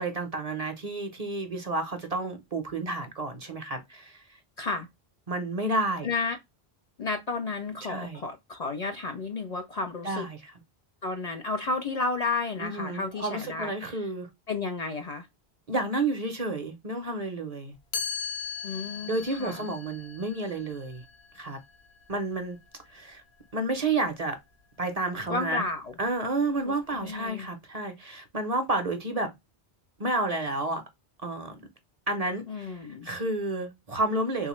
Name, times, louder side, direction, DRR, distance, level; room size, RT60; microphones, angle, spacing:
voice 1, 0.0-4.2 5.3-6.1 7.8-8.2 10.0-10.5 12.6-14.3 15.7-17.7 19.1-21.0 21.3-21.6 22.1-22.6 22.9-23.2 23.5-24.4 24.8-25.6 26.0-29.3 30.0-30.8 31.2-31.7 32.1-32.7 33.0-34.5, right 2 dB, 45° right, 0.6 m, -30 dB
voice 2, 6.0-6.4 7.0-10.3 11.0-14.1 14.5-15.3 18.6-19.7 25.3-25.9 26.6-27.5 32.5-33.1, left 3 dB, 55° left, 0.5 m, -32 dB
Chime, 17.9-23.8, left 6 dB, 85° left, 1.0 m, -39 dB
3.5 x 2.3 x 2.9 m
omnidirectional pair, 1.1 m